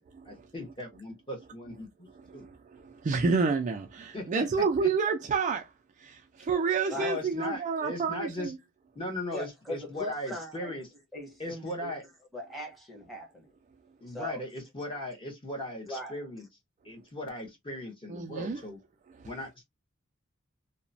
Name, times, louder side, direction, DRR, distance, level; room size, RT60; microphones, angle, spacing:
voice 1, 0.2-2.1 2.3-2.4 4.1-4.9 6.9-8.5 8.9-10.9 11.4-12.0 14.0-16.4 16.8-18.8 19.2-19.6, left 1 dB, 25° left, 1.0 m, -38 dB
voice 2, 2.3-5.7 6.0-8.6 18.1-18.6, right 5 dB, 35° right, 0.3 m, -29 dB
voice 3, 9.3-10.8 11.1-11.9 12.3-13.5 14.1-14.4 15.9-16.2, equal, ahead, 1.0 m, -40 dB
2.9 x 2.1 x 2.5 m
head